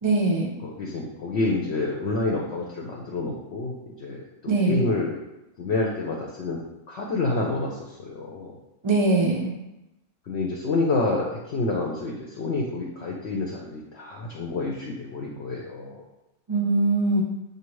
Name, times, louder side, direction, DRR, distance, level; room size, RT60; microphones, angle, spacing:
voice 1, 0.0-0.5 4.5-4.8 8.8-9.5 16.5-17.2, right 2 dB, 45° right, 0 dB, 0.3 m, -22 dB
voice 2, 0.6-5.1 5.6-6.6 6.9-8.6 10.3-16.0, left 3 dB, 60° left, -2 dB, 0.8 m, -28 dB
5.0 x 2.8 x 3.1 m, 0.93 s
omnidirectional pair, 1.4 m